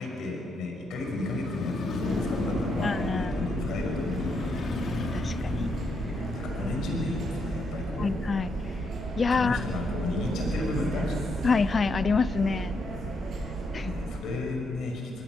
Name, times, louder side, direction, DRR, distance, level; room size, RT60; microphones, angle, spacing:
voice 1, 0.0-4.7 6.3-8.1 9.4-11.2 13.0-13.3 13.8-15.2, left 2 dB, 80° left, 1 dB, 5.4 m, -33 dB
Motorcycle, 0.9-11.1 11.4-11.5, left 3 dB, 60° left, 2.3 m, -35 dB
sound 1, 2.0-14.2, right 3 dB, 65° right, 6.3 m, -34 dB
voice 2, 2.8-3.3 4.9-5.7 8.0-8.5 9.2-9.6 11.4-12.8 13.7-14.0, left 5 dB, 40° left, 16 dB, 0.5 m, -27 dB
25.5 x 20.0 x 6.2 m, 2.9 s
cardioid pair, 90°, 0 cm